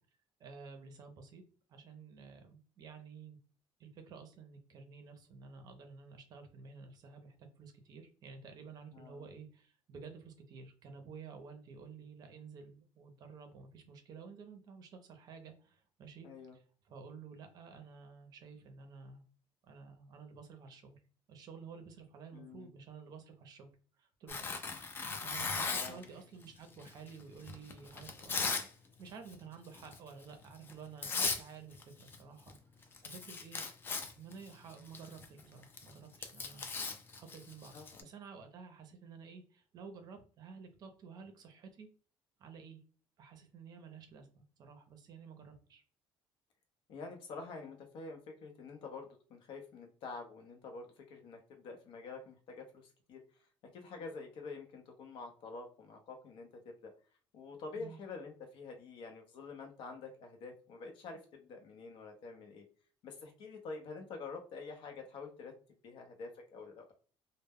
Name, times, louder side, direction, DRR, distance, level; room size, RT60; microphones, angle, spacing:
voice 1, 0.4-1.4 1.7-3.4 3.8-19.2 19.6-21.0 21.3-23.7 24.0-24.5 25.2-33.6 34.2-36.8 37.1-41.9 42.4-42.8 43.2-45.8 57.7-58.0, right 5 dB, 45° right, 6 dB, 0.5 m, -52 dB
voice 2, 8.9-9.3 16.2-16.6 22.3-22.7 25.7-26.1 37.7-38.1 46.9-53.2 53.7-56.5 56.8-56.9 57.3-62.6 63.0-65.5 65.8-66.9, left 4 dB, 60° left, 4 dB, 0.6 m, -47 dB
Tearing, 24.3-26.1 26.8-28.7 29.0-29.3 29.7-30.0 30.7-30.8 31.0-31.4 31.7-32.2 32.5-32.6 32.8-38.0, left 4 dB, 25° left, 0.3 m, -38 dB
2.1 x 2.0 x 3.4 m, 0.40 s
cardioid pair, 160°, 9 cm